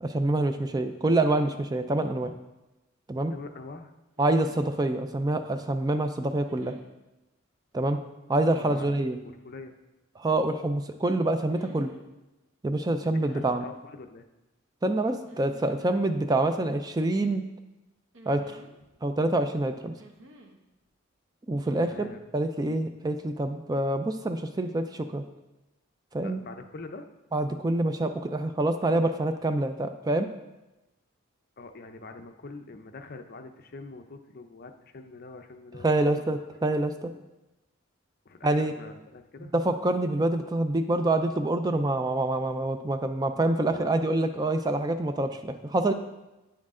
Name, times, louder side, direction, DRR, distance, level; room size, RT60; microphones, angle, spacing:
voice 1, 0.0-2.3 3.1-3.3 4.2-6.7 7.7-8.0 8.3-9.2 10.2-11.9 12.6-13.6 14.8-17.4 18.3-18.6 19.0-19.9 21.5-22.1 22.3-25.2 26.1-26.4 27.3-30.3 35.8-37.1 38.4-38.7 39.4-45.9, right 2 dB, 20° right, 8 dB, 0.4 m, -26 dB
voice 2, 3.3-3.9 8.6-8.9 9.2-9.7 13.2-14.3 21.7-22.2 26.2-27.1 31.6-36.4 38.2-39.5 43.7-43.9, left 3 dB, 50° left, 7 dB, 0.6 m, -44 dB
sound 1, 4.2-4.7 6.5-6.9 8.4-9.0 11.5-12.0 13.2-13.8 15.3-15.9 16.2-16.3 18.1-19.1 20.0-20.6 21.6-21.9, right 1 dB, 65° right, 0.9 m, -51 dB
9.3 x 6.4 x 3.7 m, 1.0 s
head